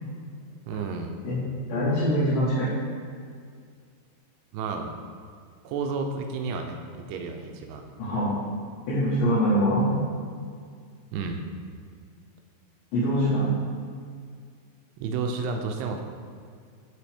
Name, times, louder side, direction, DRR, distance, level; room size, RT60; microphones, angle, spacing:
voice 1, 0.7-1.2 4.5-4.9 5.6-7.8 11.1-11.4 15.0-16.0, right 4 dB, 85° right, 4 dB, 2.7 m, -31 dB
voice 2, 1.7-2.7 8.0-8.4 8.9-9.9 12.9-13.5, equal, 70° left, -10 dB, 3.1 m, -23 dB
12.5 x 4.2 x 3.5 m, 2.1 s
omnidirectional pair, 4.7 m